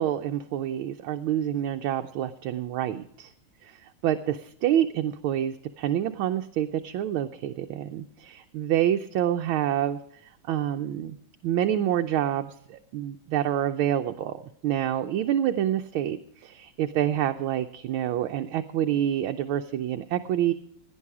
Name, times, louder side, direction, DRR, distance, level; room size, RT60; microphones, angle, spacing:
voice 1, 0.0-3.3 3.6-11.2 11.4-20.5, right 11 dB, 75° right, 6 dB, 1.4 m, -27 dB
16.5 x 10.5 x 4.7 m, 0.71 s
omnidirectional pair, 2.4 m